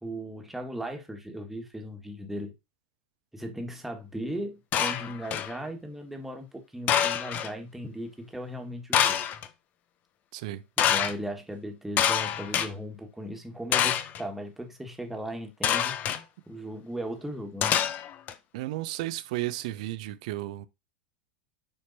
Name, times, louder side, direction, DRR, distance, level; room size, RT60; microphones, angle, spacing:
voice 1, 0.0-2.5 3.3-9.3 10.8-16.0 16.5-17.8, equal, 5° right, 1.7 m, -37 dB
sound 1, 4.7-5.5 6.9-7.5 8.9-9.5 10.8-11.1 12.0-12.7 13.7-14.2 15.6-16.2 17.6-18.3, left 9 dB, 35° left, 0.8 m, -26 dB
voice 2, 10.3-10.6 18.5-20.7, right 16 dB, 55° right, 0.7 m, -33 dB
10.5 x 4.5 x 2.8 m
figure-of-eight pair, 85°, 5 cm